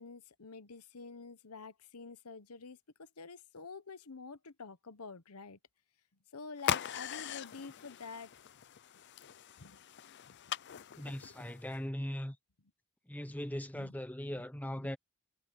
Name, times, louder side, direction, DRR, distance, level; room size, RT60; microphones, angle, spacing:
voice 1, 0.0-5.6 6.3-8.3 9.6-9.8 10.3-10.5 13.3-13.4 13.7-14.0, left 4 dB, 85° left, 1.0 m, -48 dB
sound 1, 6.6-11.8, left 9 dB, 50° left, 0.5 m, -40 dB
voice 2, 11.0-12.4 13.1-15.0, equal, 5° left, 1.0 m, -39 dB
head